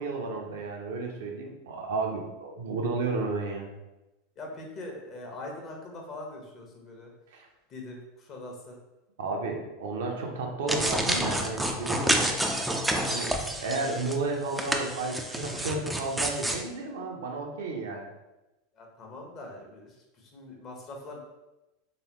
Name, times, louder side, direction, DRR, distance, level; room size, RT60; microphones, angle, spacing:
voice 1, 0.0-3.7 7.3-7.5 9.2-12.2 13.1-18.1, right 3 dB, 70° right, 1 dB, 0.7 m, -32 dB
voice 2, 4.4-7.1 7.7-8.8 18.7-21.2, left 2 dB, 40° left, 0 dB, 1.0 m, -42 dB
sound 1, 10.7-14.2 14.5-16.6, right 1 dB, 5° right, 0.4 m, -29 dB
3.3 x 3.1 x 3.0 m, 0.99 s
hypercardioid pair, 85°, 0 cm